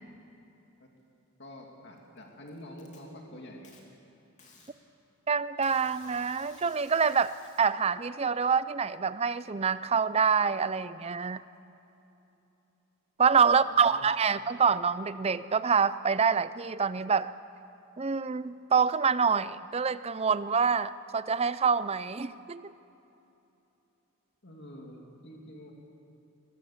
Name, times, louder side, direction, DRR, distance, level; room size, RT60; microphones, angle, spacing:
voice 1, 1.4-3.8 13.4-14.1 24.4-25.7, equal, 50° left, 0 dB, 2.6 m, -47 dB
Packing tape duct tape, 2.0-3.0 3.6-3.8 4.4-4.7 5.6-7.7, left 4 dB, 30° left, 3.1 m, -57 dB
voice 2, 5.3-11.4 13.2-17.3 18.0-22.7, right 6 dB, 25° right, 15 dB, 0.5 m, -26 dB
22.5 x 22.0 x 7.3 m, 3.0 s
head